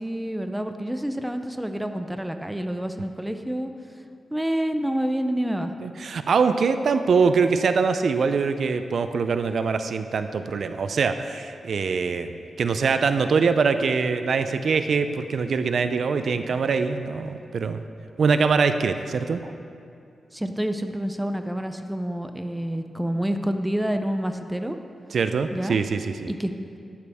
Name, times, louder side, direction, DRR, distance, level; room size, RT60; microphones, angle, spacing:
voice 1, 0.0-3.7 4.3-5.7 20.3-24.8 25.5-25.8 26.3-26.5, equal, 5° right, 7 dB, 0.5 m, -28 dB
voice 2, 5.8-17.8 18.2-19.5 25.1-26.3, right 5 dB, 60° right, 9 dB, 0.5 m, -23 dB
13.5 x 11.0 x 3.5 m, 2.5 s
wide cardioid pair, 145°, 0 cm